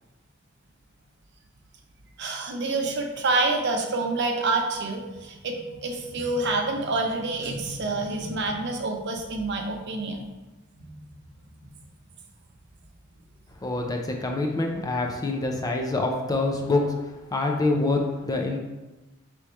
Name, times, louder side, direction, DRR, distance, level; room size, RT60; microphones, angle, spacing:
voice 1, 2.2-5.5 5.8-10.2 10.8-11.0, right 3 dB, 55° right, 2 dB, 0.6 m, -27 dB
voice 2, 13.6-18.6, left 2 dB, 20° left, 2 dB, 0.4 m, -26 dB
3.4 x 3.2 x 4.2 m, 1.1 s
head